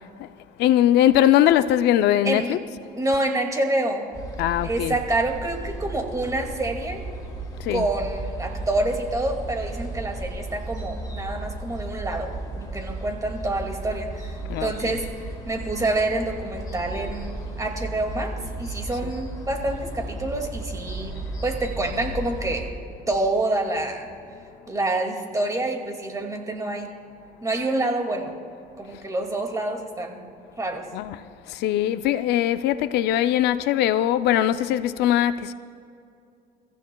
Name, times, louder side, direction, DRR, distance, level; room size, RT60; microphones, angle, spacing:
voice 1, 0.6-2.6 4.4-5.0 7.6-7.8 14.5-14.9 30.9-31.2 31.5-35.5, left 12 dB, 80° left, 0.5 m, -21 dB
voice 2, 2.2-2.6 3.0-4.1 4.6-7.0 7.7-14.1 14.6-15.1 15.5-21.2 21.4-22.7 23.1-24.1 24.7-26.9 27.4-28.3 28.8-30.2 30.6-30.9, right 2 dB, 20° right, 2.2 m, -27 dB
sound 1, 4.1-22.7, right 2 dB, 20° left, 3.4 m, -34 dB
30.0 x 15.0 x 2.3 m
cardioid pair, 110°, 17 cm